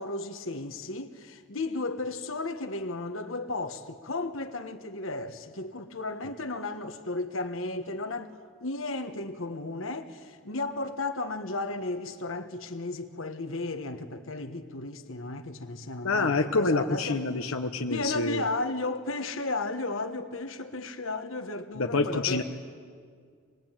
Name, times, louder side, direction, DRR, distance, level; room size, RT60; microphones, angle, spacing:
voice 1, 0.0-17.2 17.9-22.4, left 2 dB, 70° left, 1.4 m, -34 dB
voice 2, 16.0-18.4 21.8-22.4, left 3 dB, 85° left, 1.2 m, -27 dB
26.5 x 21.0 x 9.1 m
head